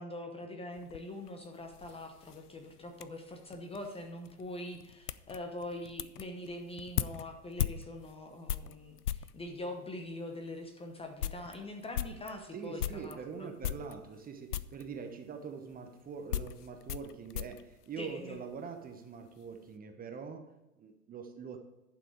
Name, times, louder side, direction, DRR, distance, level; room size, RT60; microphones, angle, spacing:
voice 1, 0.0-13.5 18.0-18.4, left 1 dB, 10° left, 4 dB, 0.8 m, -43 dB
sound 1, 0.7-9.4 10.1-10.2 10.6-10.7 11.0-13.2 13.6-14.3 14.5-14.9 15.7-18.6 18.9-19.5, left 10 dB, 80° left, 0.5 m, -39 dB
voice 2, 12.5-21.6, right 6 dB, 20° right, 5 dB, 0.9 m, -44 dB
11.0 x 6.2 x 4.7 m, 1.0 s
figure-of-eight pair, 95°, 46 cm